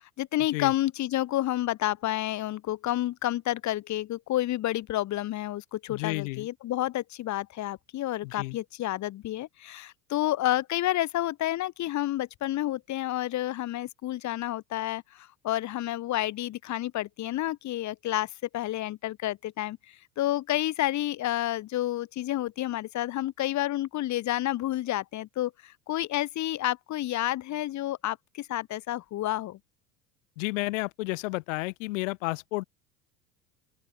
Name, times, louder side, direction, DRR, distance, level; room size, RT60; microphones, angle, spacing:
voice 1, 0.0-29.6, left 14 dB, 40° left, 2.7 m, -30 dB
voice 2, 5.9-6.5 8.2-8.6 30.4-32.6, left 24 dB, 60° left, 6.0 m, -31 dB
open air
figure-of-eight pair, 75°, 43 cm